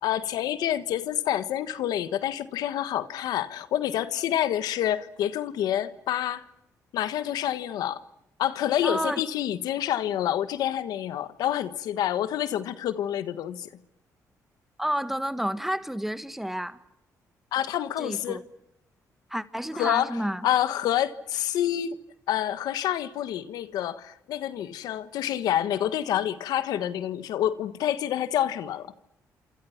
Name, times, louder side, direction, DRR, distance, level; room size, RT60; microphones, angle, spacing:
voice 1, 0.0-6.4 6.9-8.0 8.4-13.7 17.5-18.4 19.7-20.2 20.4-22.0 22.3-28.9, left 11 dB, 85° left, 1.4 m, -28 dB
voice 2, 8.8-9.2 14.8-16.8 18.0-18.4 19.3-20.4, equal, 5° right, 1.6 m, -30 dB
28.5 x 27.0 x 5.9 m
cardioid pair, 90°, 7 cm